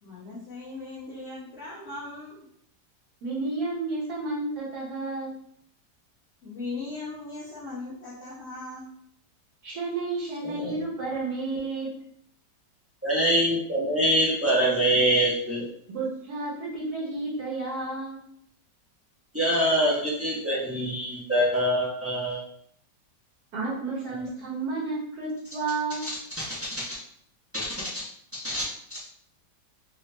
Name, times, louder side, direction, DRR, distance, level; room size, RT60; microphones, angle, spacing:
voice 1, 0.0-2.5 6.4-8.9, left 3 dB, 40° left, -11 dB, 1.5 m, -38 dB
voice 2, 3.2-5.4 9.6-11.9 15.9-18.2 23.5-26.1, right 3 dB, 60° right, -5 dB, 1.3 m, -31 dB
voice 3, 10.4-10.8 13.0-15.7 19.3-22.4 26.0-27.0 27.5-28.0 28.3-28.6 28.9-29.0, equal, 15° right, -7 dB, 0.4 m, -25 dB
4.1 x 2.4 x 3.2 m, 0.66 s
omnidirectional pair, 1.9 m